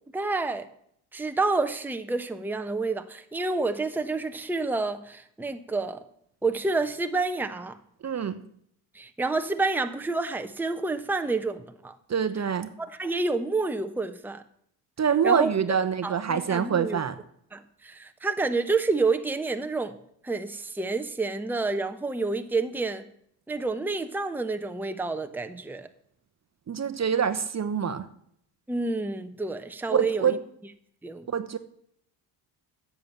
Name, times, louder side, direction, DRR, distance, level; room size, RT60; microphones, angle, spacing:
voice 1, 0.1-0.7 1.1-6.0 6.4-7.8 8.9-12.0 12.8-14.4 15.2-15.5 16.0-17.0 17.5-20.0 20.2-23.0 23.5-25.9 28.7-30.4 31.0-31.3, right 3 dB, 5° right, 7 dB, 1.0 m, -29 dB
voice 2, 8.0-8.4 12.1-12.7 15.0-17.1 26.7-28.1 29.9-30.4 31.3-31.6, right 7 dB, 35° right, 10 dB, 1.0 m, -25 dB
10.5 x 7.4 x 7.4 m, 0.68 s
supercardioid pair, 70°, 49 cm